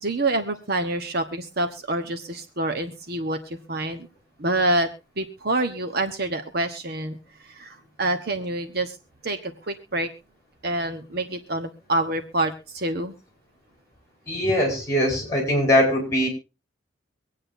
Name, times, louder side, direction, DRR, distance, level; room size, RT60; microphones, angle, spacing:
voice 1, 0.0-4.1 4.4-4.9 5.2-9.0 9.2-10.1 10.6-13.1, right 2 dB, 50° right, 7 dB, 1.2 m, -27 dB
voice 2, 14.3-16.3, equal, 15° left, 2 dB, 5.2 m, -21 dB
24.5 x 8.8 x 2.7 m, 0.29 s
head